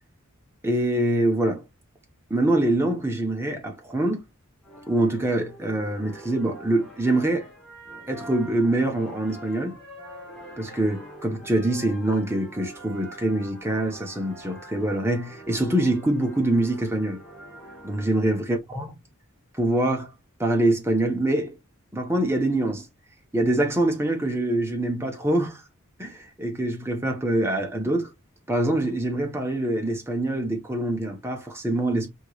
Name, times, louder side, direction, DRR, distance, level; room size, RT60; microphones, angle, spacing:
voice 1, 0.6-1.6 2.3-4.2 4.9-7.5 8.1-9.8 10.6-17.2 17.8-18.9 19.6-20.1 20.4-21.5 21.9-22.9 23.3-25.6 26.0-28.1 28.5-32.1, right 1 dB, 10° right, 0.8 m, -24 dB
sound 1, 4.6-18.1, right 1 dB, 5° left, 1.4 m, -44 dB
4.6 x 3.0 x 2.3 m
head